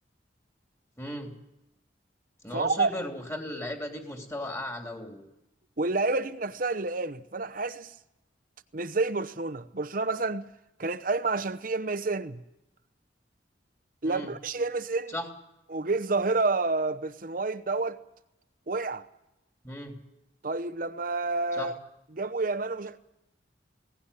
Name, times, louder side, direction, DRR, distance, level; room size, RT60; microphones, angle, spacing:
voice 1, 1.0-1.3 2.4-5.2 14.0-14.3 15.1-15.3 19.6-20.0 21.5-21.7, left 1 dB, 15° left, 3.2 m, -36 dB
voice 2, 2.5-2.9 5.8-7.9 8.7-10.4 10.8-12.4 14.0-15.1 15.7-18.0 18.7-19.0 20.4-21.7 22.1-23.0, right 3 dB, 50° right, 0.9 m, -29 dB
20.0 x 17.5 x 10.0 m
head